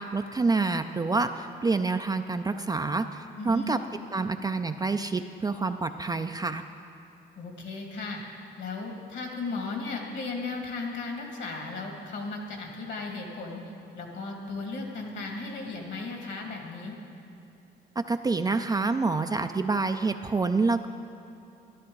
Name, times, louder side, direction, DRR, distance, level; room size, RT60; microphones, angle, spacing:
voice 1, 0.0-3.8 4.1-6.6 18.0-20.9, right 3 dB, 20° right, 8 dB, 0.3 m, -27 dB
voice 2, 3.4-3.8 7.4-8.2 8.6-13.6 13.9-17.0, left 3 dB, 65° left, 1 dB, 2.1 m, -35 dB
13.0 x 11.5 x 3.8 m, 2.7 s
cardioid pair, 90°, 20 cm